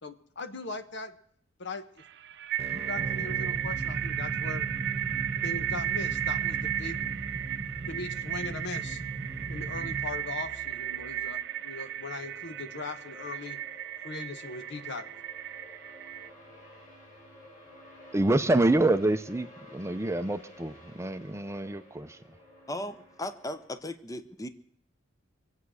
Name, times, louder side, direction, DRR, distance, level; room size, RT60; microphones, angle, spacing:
voice 1, 0.0-1.2 1.6-2.0 2.9-4.7 5.4-7.1 7.9-9.0 9.5-13.6 14.0-15.2, left 3 dB, 60° left, 1.3 m, -39 dB
sound 1, 2.0-16.3, right 11 dB, 60° right, 0.7 m, -34 dB
sound 2, 2.6-11.3, right 3 dB, 35° right, 1.1 m, -38 dB
sound 3, 4.0-23.7, left 1 dB, 40° left, 6.3 m, -54 dB
voice 2, 18.1-22.2, right 2 dB, 15° right, 0.6 m, -27 dB
voice 3, 22.7-24.5, left 1 dB, 15° left, 0.8 m, -37 dB
24.5 x 8.4 x 6.4 m
head